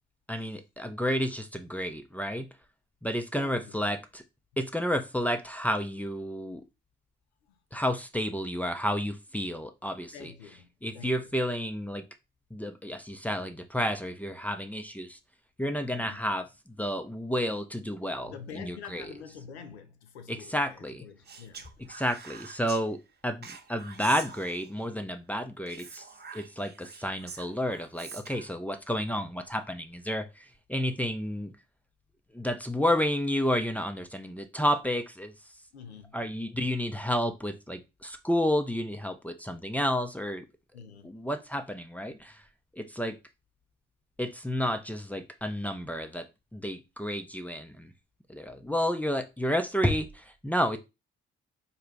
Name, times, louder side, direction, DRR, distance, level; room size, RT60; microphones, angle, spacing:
voice 1, 0.3-2.5 3.0-4.2 4.6-6.6 7.7-10.3 10.8-12.0 12.5-15.2 15.6-19.1 20.3-21.0 21.9-26.1 26.3-31.5 32.3-35.3 36.1-40.5 41.0-42.4 42.7-43.2 44.2-47.9 48.3-50.8, equal, 5° left, 0.5 m, -31 dB
voice 2, 3.3-3.8 7.5-7.6 10.1-11.3 15.9-16.2 18.2-21.8 35.7-36.2 40.7-41.2, left 7 dB, 85° left, 0.5 m, -47 dB
Speech, 21.3-22.8 23.4-24.9 25.7-28.5, right 5 dB, 30° right, 0.7 m, -45 dB
3.9 x 2.2 x 3.3 m
figure-of-eight pair, 40°, 32 cm